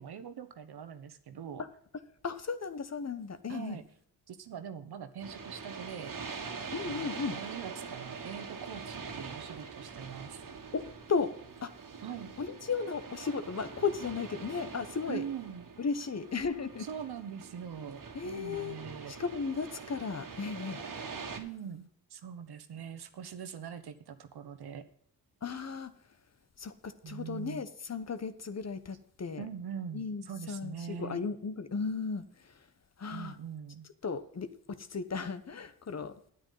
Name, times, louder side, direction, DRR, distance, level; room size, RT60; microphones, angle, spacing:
voice 1, 0.0-1.6 3.5-3.8 4.3-6.2 6.8-10.4 12.0-12.3 15.1-15.7 16.8-19.1 21.4-24.9 27.0-27.7 29.4-31.2 33.1-33.9, right 8 dB, 70° right, 11 dB, 1.2 m, -43 dB
voice 2, 2.2-3.8 6.7-7.4 10.7-11.3 11.6-11.7 12.4-15.3 15.8-16.9 18.1-18.8 19.1-20.8 25.4-25.9 26.6-29.5 29.9-32.6 33.0-33.4 34.0-36.1, left 5 dB, 40° left, 12 dB, 1.1 m, -35 dB
sound 1, 5.2-21.4, right 5 dB, 55° right, 1.8 m, -44 dB
9.6 x 9.3 x 5.6 m, 0.62 s
cardioid pair, 70°, 39 cm